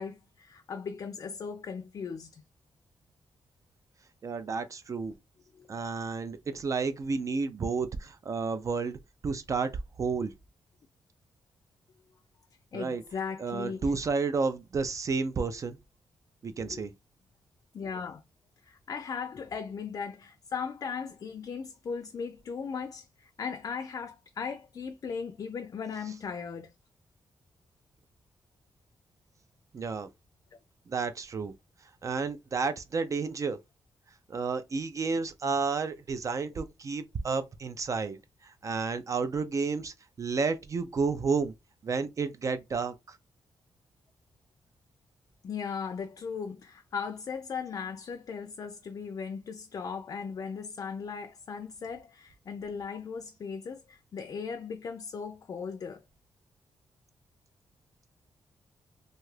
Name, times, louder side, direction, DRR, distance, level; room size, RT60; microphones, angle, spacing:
voice 1, 0.0-2.4 5.6-5.9 12.7-13.9 16.6-16.8 17.7-18.2 18.6-26.7 45.4-56.0, left 6 dB, 45° left, 0.3 m, -38 dB
voice 2, 4.2-5.1 5.7-9.7 10.0-10.3 12.7-13.0 13.4-15.8 16.4-16.9 29.7-30.1 30.9-31.5 32.0-33.6 34.3-38.2 38.4-41.5 41.8-43.2, right 4 dB, 40° right, 0.3 m, -31 dB
2.7 x 2.3 x 3.1 m
wide cardioid pair, 125°, 9 cm